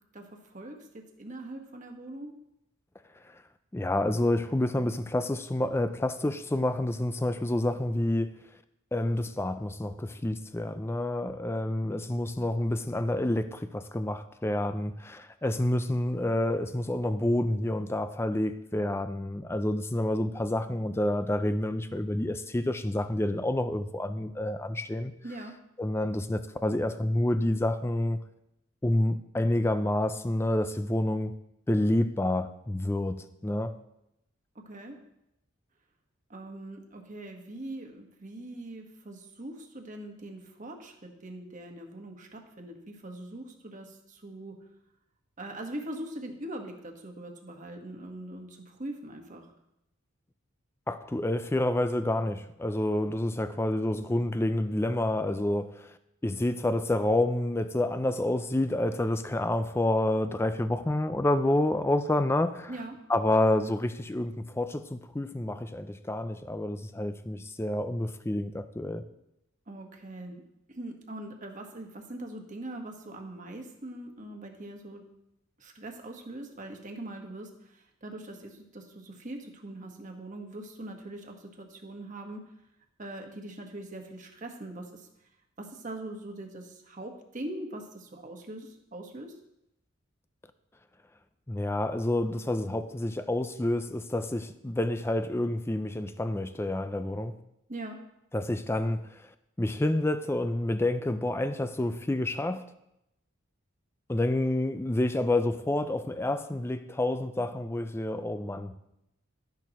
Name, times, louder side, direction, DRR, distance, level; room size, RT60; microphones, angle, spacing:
voice 1, 0.1-0.8 1.2-2.3 25.2-25.5 34.6-35.0 36.3-44.6 45.4-49.5 62.7-63.0 69.7-70.4 70.7-75.0 75.6-82.4 83.0-85.1 85.6-89.3 97.7-98.0, right 1 dB, 35° right, 1.3 m, -42 dB
voice 2, 3.7-8.3 8.9-25.1 25.8-28.2 28.8-31.3 31.7-33.7 50.9-55.9 56.2-62.7 63.1-69.0 91.5-97.3 98.3-99.3 99.6-102.7 104.1-108.8, left 1 dB, 10° left, 0.4 m, -28 dB
12.5 x 10.5 x 3.0 m
head